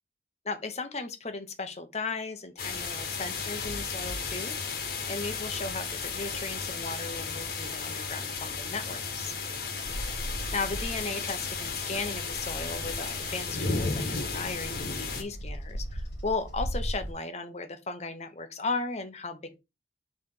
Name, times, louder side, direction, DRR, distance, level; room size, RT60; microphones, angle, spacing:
voice 1, 0.4-4.6 5.1-9.3 10.5-19.6, left 3 dB, 40° left, 1.0 m, -36 dB
sound 1, 2.6-15.2, left 4 dB, 60° left, 1.6 m, -34 dB
Bird vocalization bird call bird song, 9.8-17.1, equal, 80° left, 2.1 m, -38 dB
6.0 x 3.5 x 4.6 m
head